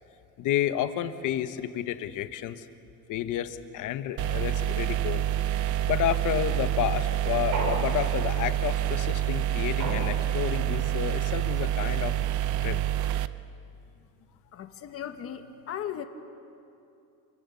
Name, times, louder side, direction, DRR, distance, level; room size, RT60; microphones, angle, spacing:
voice 1, 0.4-2.6 3.1-5.3 5.9-12.2 12.6-12.8, left 11 dB, 60° left, 10 dB, 1.2 m, -30 dB
sound 1, 4.2-13.3, right 12 dB, 55° right, 0.7 m, -27 dB
sound 2, 7.5-8.5 9.8-10.6, right 3 dB, 75° right, 6.2 m, -34 dB
voice 2, 14.5-16.1, left 10 dB, 40° left, 7 dB, 1.4 m, -37 dB
28.5 x 23.5 x 7.0 m, 2.7 s
cardioid pair, 165°, 35 cm